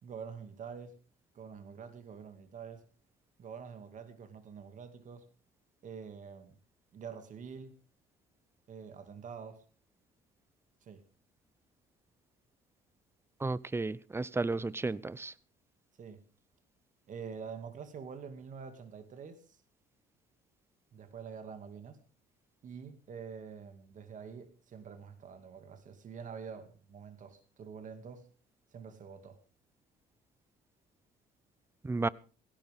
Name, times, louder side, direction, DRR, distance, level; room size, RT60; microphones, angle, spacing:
voice 1, 0.0-1.0 1.3-2.9 3.4-5.3 5.8-6.6 6.9-7.8 8.7-9.6 10.8-11.0 16.0-16.2 17.1-19.6 20.9-22.0 22.6-28.3 28.7-29.4, right 6 dB, 50° right, 2.5 m, -46 dB
voice 2, 13.4-15.3 31.8-32.1, right 3 dB, 15° right, 0.7 m, -33 dB
17.5 x 16.5 x 3.7 m
cardioid pair, 110°, 17 cm